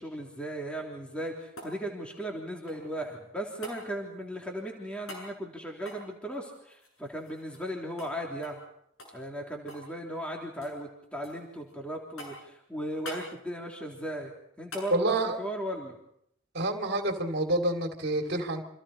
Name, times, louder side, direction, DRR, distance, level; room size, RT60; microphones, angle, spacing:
voice 1, 0.0-8.6 9.1-14.3 14.6-16.0, right 1 dB, 5° left, 0 dB, 3.2 m, -37 dB
sound 1, 0.9-3.0 3.6-3.8 5.1-5.3 5.8-7.7 8.0-8.1 8.4-8.7 9.0-9.9 10.2-10.8 11.2-11.7 12.2-12.5 13.0-13.3 14.7-14.9 17.3-17.4, left 1 dB, 80° left, 7.8 m, -45 dB
voice 2, 14.9-15.4 16.5-18.6, right 2 dB, 50° right, 4 dB, 2.8 m, -28 dB
29.5 x 26.0 x 4.4 m, 0.72 s
head